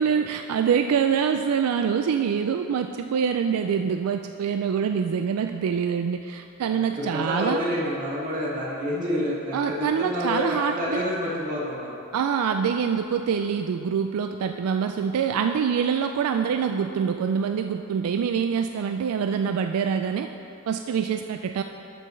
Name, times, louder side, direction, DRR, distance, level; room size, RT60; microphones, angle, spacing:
voice 1, 0.0-7.6 9.5-11.0 12.1-20.3 20.7-21.6, right 7 dB, 75° right, 6 dB, 0.3 m, -25 dB
voice 2, 6.6-12.0, equal, 35° right, -7 dB, 1.9 m, -28 dB
13.0 x 6.7 x 3.2 m, 2.9 s
head